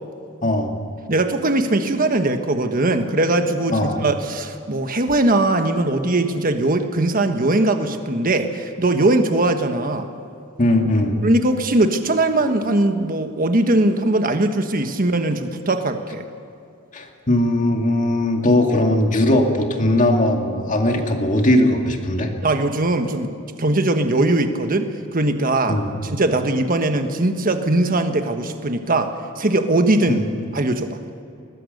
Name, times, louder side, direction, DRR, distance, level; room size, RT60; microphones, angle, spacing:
voice 1, 0.4-0.7 3.7-4.0 10.6-11.2 16.9-22.3 25.7-25.9 30.1-30.2, left 1 dB, 40° left, 3 dB, 2.1 m, -19 dB
voice 2, 1.1-10.1 11.2-16.3 22.4-23.3 23.6-30.2 30.5-31.0, right 2 dB, 45° right, 7 dB, 1.3 m, -20 dB
21.5 x 19.5 x 6.6 m, 2.5 s
head